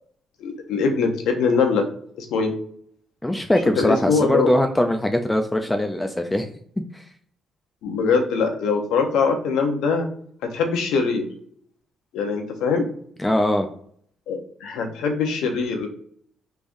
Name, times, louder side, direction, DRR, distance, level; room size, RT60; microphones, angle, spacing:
voice 1, 0.4-1.8 2.2-2.6 3.8-4.5 7.8-10.1 10.4-11.3 12.1-12.9 14.3-15.9, left 5 dB, 90° left, 4 dB, 0.7 m, -22 dB
voice 2, 3.2-6.5 6.9-7.0 13.2-13.7, left 1 dB, 10° left, 6 dB, 0.3 m, -21 dB
3.5 x 3.2 x 2.6 m, 0.62 s
cardioid pair, 90°, 0 cm